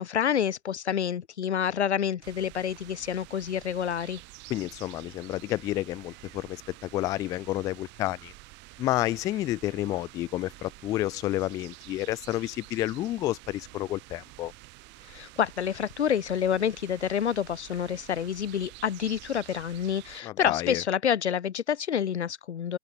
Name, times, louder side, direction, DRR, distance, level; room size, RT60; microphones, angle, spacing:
voice 1, 0.0-4.2 15.1-22.8, left 8 dB, 75° left, 0.7 m, -28 dB
sound 1, 2.2-20.2, right 24 dB, 30° right, 2.7 m, -49 dB
voice 2, 4.5-8.3 8.8-14.5 20.2-20.8, left 15 dB, 10° left, 0.4 m, -30 dB
open air
figure-of-eight pair, 110°, 34 cm